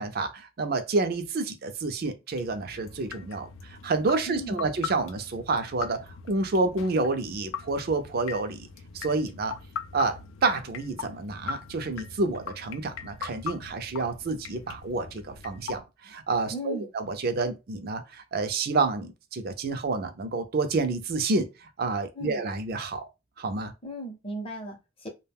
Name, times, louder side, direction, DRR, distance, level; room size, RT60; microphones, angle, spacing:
voice 1, 0.0-8.7 8.9-9.6 9.9-23.0 23.4-23.7, right 3 dB, 50° right, 0.5 m, -29 dB
sound 1, 2.3-15.8, left 7 dB, 85° left, 0.4 m, -41 dB
voice 2, 4.3-4.7 16.5-16.9 22.1-22.4 23.8-25.1, right 1 dB, 30° left, 0.7 m, -36 dB
2.3 x 2.2 x 3.4 m
head